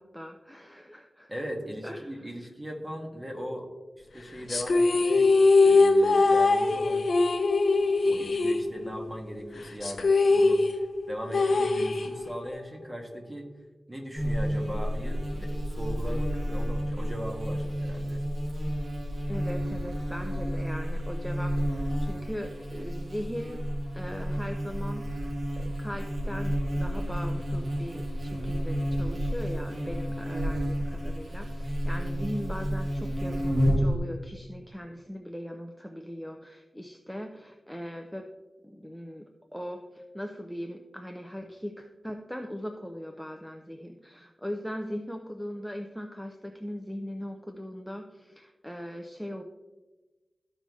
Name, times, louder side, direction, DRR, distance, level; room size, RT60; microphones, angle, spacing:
voice 1, 0.0-1.3 1.8-2.3 19.3-23.6 23.9-25.3 25.6-38.3 38.6-49.4, equal, ahead, 3 dB, 0.6 m, -39 dB
voice 2, 1.3-3.7 4.0-5.3 5.6-7.1 8.1-13.5 13.9-18.3, equal, 15° right, 1 dB, 1.7 m, -39 dB
sound 1, 4.5-9.2 9.4-9.5 9.8-12.5, left 3 dB, 65° left, 0.8 m, -22 dB
Buzz, 14.1-34.0, equal, 80° right, 2.3 m, -30 dB
13.5 x 5.4 x 3.2 m, 1.2 s
wide cardioid pair, 100°, 0 cm